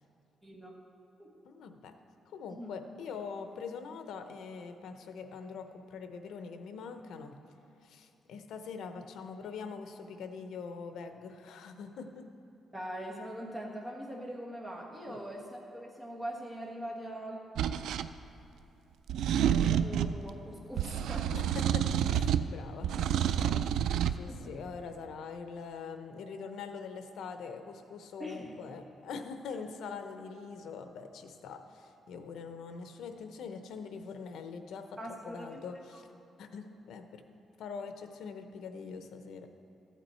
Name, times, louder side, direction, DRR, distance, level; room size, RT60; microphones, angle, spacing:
voice 1, 0.4-0.7 1.2-1.3 2.5-2.7 12.7-17.4 19.4-21.3 23.8-23.9 24.3-24.6 28.2-28.5 35.0-35.6, equal, 10° right, -3 dB, 1.5 m, -42 dB
voice 2, 1.5-1.9 2.3-7.4 7.8-12.3 15.1-15.2 21.3-34.9 35.2-36.1 36.4-37.2 37.6-39.5, left 5 dB, 80° left, 7 dB, 0.7 m, -43 dB
sound 1, 17.6-18.1 19.1-20.2 20.8-22.5 22.8-24.2, right 9 dB, 90° right, 0.3 m, -29 dB
14.0 x 8.4 x 4.4 m, 2.8 s
cardioid pair, 150°, 0 cm